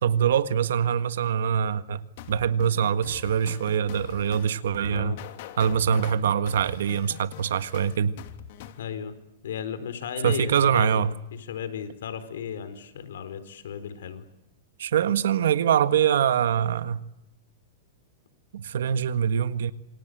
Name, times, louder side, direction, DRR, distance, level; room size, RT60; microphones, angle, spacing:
voice 1, 0.0-2.0 2.3-5.2 5.6-8.1 10.2-11.1 14.8-17.0 18.5-19.7, right 8 dB, 85° right, 1.6 m, -24 dB
sound 1, 2.2-8.8, left 12 dB, 55° left, 2.8 m, -42 dB
voice 2, 4.9-5.2 8.8-9.1 9.4-11.0 11.3-14.2, left 8 dB, 85° left, 4.3 m, -35 dB
28.0 x 26.5 x 8.1 m
supercardioid pair, 150°, 0 cm